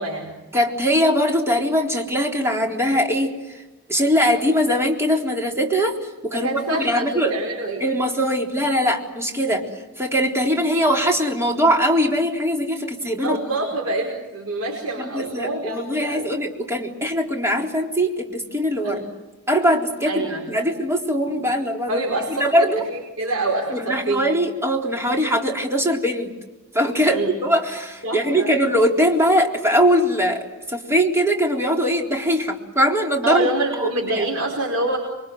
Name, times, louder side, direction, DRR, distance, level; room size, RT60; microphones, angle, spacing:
voice 1, 0.0-0.4 6.3-7.9 9.5-9.7 13.2-16.3 18.8-19.1 20.1-20.7 21.3-21.4 21.9-24.4 27.1-27.3 28.0-28.5 33.2-35.0, right 2 dB, 80° right, -1 dB, 5.3 m, -26 dB
voice 2, 0.5-3.6 3.9-7.4 7.8-9.6 10.0-13.4 15.0-19.0 19.5-22.0 22.3-22.8 23.7-26.3 26.7-33.5 33.8-33.9 34.2-34.3, equal, 10° right, 1 dB, 3.8 m, -21 dB
28.0 x 24.0 x 7.9 m, 1.1 s
head